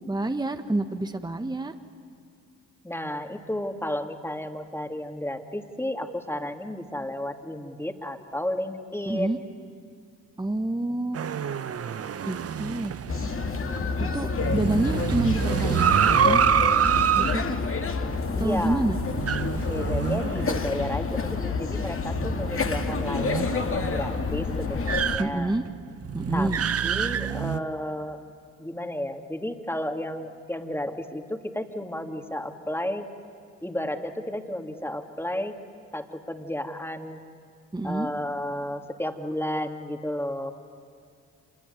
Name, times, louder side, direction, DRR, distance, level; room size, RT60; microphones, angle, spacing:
voice 1, 0.1-1.7 9.1-9.4 10.4-11.2 12.2-13.0 14.0-16.4 17.1-17.6 18.4-19.0 25.2-25.6 26.1-26.6 37.7-38.1, right 2 dB, 10° right, 8 dB, 1.5 m, -28 dB
voice 2, 2.8-9.4 13.5-14.3 18.3-18.8 19.7-25.5 26.3-26.5 26.8-28.2 28.6-33.1 33.6-35.5 35.9-37.2 37.8-40.5, left 1 dB, 5° left, 5 dB, 2.6 m, -32 dB
sound 1, 11.1-21.1 21.4-21.5 22.1-27.6, right 8 dB, 40° right, 0.9 m, -27 dB
sound 2, 13.1-25.2, left 4 dB, 35° left, 2.0 m, -28 dB
27.0 x 21.0 x 9.4 m, 2.3 s
hypercardioid pair, 45°, 37 cm